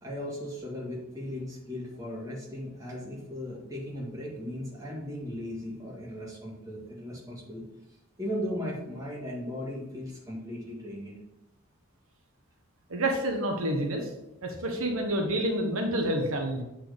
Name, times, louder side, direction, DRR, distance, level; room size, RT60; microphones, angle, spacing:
voice 1, 0.0-7.6 8.2-11.2, left 1 dB, 15° right, -4 dB, 2.0 m, -37 dB
voice 2, 12.9-14.1 14.4-16.6, right 1 dB, 75° right, 2 dB, 1.1 m, -28 dB
7.8 x 4.4 x 5.3 m, 0.91 s
head